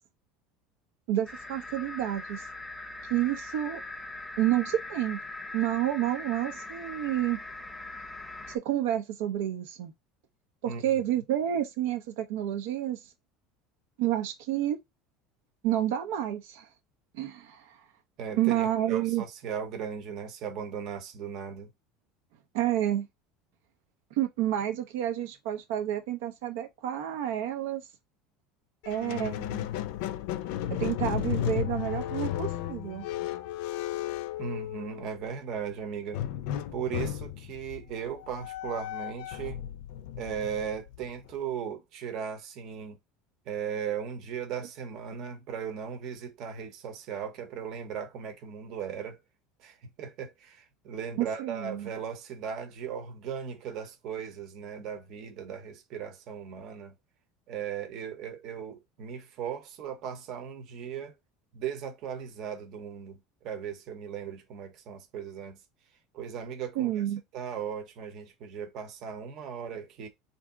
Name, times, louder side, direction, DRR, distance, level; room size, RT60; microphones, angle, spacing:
voice 1, 1.1-2.4 3.1-3.8 4.4-5.2 5.5-7.4 8.5-9.9 10.6-13.0 14.0-14.8 15.6-16.7 17.1-17.8 18.4-19.2 22.5-23.1 24.2-27.8 28.9-29.7 30.8-33.1 51.2-51.9 66.8-67.2, right 12 dB, 75° right, 0.7 m, -29 dB
sound 1, 1.3-8.6, left 2 dB, 5° left, 0.4 m, -41 dB
voice 2, 18.2-21.7 34.4-36.2 36.7-39.6 40.2-43.0 43.5-49.2 49.6-56.9 57.5-61.1 61.5-63.2 63.4-65.6 66.1-66.9 67.3-70.1, right 7 dB, 40° right, 0.9 m, -37 dB
Squeak, 28.8-35.2 36.1-41.3, left 12 dB, 65° left, 0.4 m, -34 dB
3.5 x 2.7 x 3.6 m
cardioid pair, 170°, 0 cm